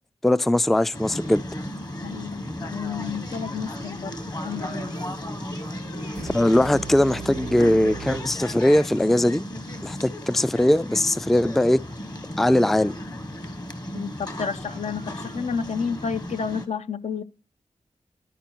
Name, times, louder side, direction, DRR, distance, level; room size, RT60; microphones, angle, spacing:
voice 1, 0.2-1.4 6.2-9.4 9.8-11.8 12.4-13.0, left 1 dB, ahead, 0.3 m, -20 dB
sound 1, 0.9-16.7, left 1 dB, 30° left, 1.2 m, -35 dB
voice 2, 2.0-4.1 4.4-5.0 13.9-17.2, left 6 dB, 60° left, 0.5 m, -31 dB
sound 2, 6.1-9.1, right 8 dB, 75° right, 0.4 m, -40 dB
11.5 x 4.5 x 4.4 m
cardioid pair, 45°, 13 cm